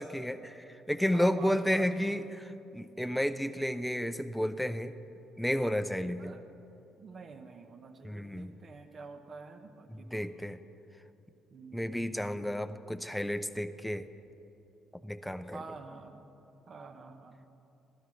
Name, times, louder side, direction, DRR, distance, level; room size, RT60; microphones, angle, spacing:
voice 1, 0.0-5.0 5.4-6.3 8.0-8.5 9.9-10.6 11.7-14.1 15.0-15.6, equal, ahead, 10 dB, 0.6 m, -32 dB
voice 2, 1.1-2.2 6.2-6.4 7.0-10.3 11.5-12.1 15.5-16.2 16.7-17.4, right 4 dB, 45° right, 6 dB, 1.1 m, -47 dB
17.0 x 12.5 x 3.3 m, 2.9 s
supercardioid pair, 80°, 0 cm